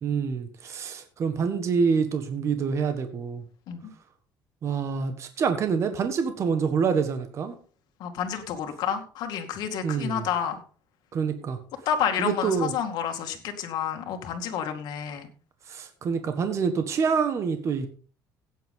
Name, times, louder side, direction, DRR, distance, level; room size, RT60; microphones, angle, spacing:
voice 1, 0.0-3.4 4.6-7.5 9.8-10.2 11.1-11.6 12.2-12.7 15.7-17.9, right 6 dB, 40° right, 7 dB, 1.6 m, -26 dB
voice 2, 8.0-10.6 11.9-15.3, left 8 dB, 65° left, 5 dB, 2.3 m, -29 dB
15.5 x 9.3 x 3.8 m, 0.39 s
cardioid pair, 145°, 8 cm